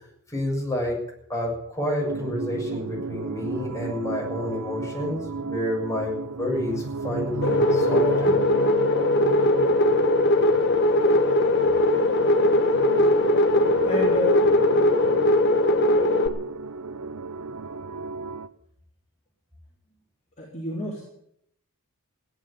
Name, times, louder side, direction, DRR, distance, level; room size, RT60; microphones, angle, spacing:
voice 1, 0.3-1.0 1.3-8.4, left 1 dB, 15° left, -2 dB, 6.7 m, -29 dB
sound 1, 2.0-18.5, right 4 dB, 90° right, 0.7 m, -34 dB
sound 2, 7.4-16.3, left 1 dB, 55° left, 1.6 m, -20 dB
voice 2, 13.8-14.5 20.4-21.0, left 2 dB, 35° left, -4 dB, 3.8 m, -29 dB
16.0 x 10.5 x 8.6 m, 0.73 s
head